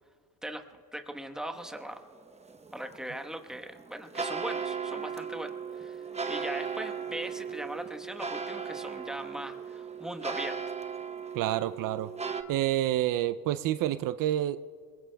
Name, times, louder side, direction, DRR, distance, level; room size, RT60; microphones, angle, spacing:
voice 1, 0.9-2.0 2.7-10.6, right 1 dB, ahead, 6 dB, 1.1 m, -40 dB
sound 1, 1.5-12.4, right 6 dB, 20° right, 0.8 m, -37 dB
voice 2, 11.3-12.1 12.5-14.6, right 13 dB, 65° right, 14 dB, 0.5 m, -28 dB
22.0 x 20.5 x 2.3 m, 2.1 s
supercardioid pair, 80°, 36 cm